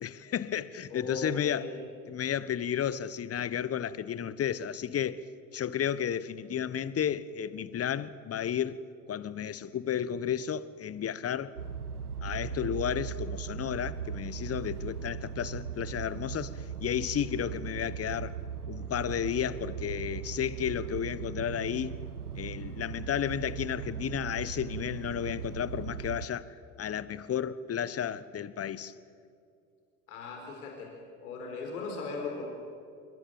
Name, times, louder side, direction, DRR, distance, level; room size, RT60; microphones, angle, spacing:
voice 1, 0.0-1.7 2.1-5.3 5.5-8.8 9.1-11.5 12.2-18.4 18.7-22.0 22.3-26.5 26.8-28.9, left 9 dB, 30° left, 1.3 m, -32 dB
voice 2, 0.9-1.8 30.1-30.9 31.2-32.5, left 3 dB, 75° left, 4.8 m, -38 dB
sound 1, 11.6-26.3, right 8 dB, 90° right, 1.0 m, -38 dB
26.5 x 25.0 x 7.8 m
figure-of-eight pair, 65°, 44 cm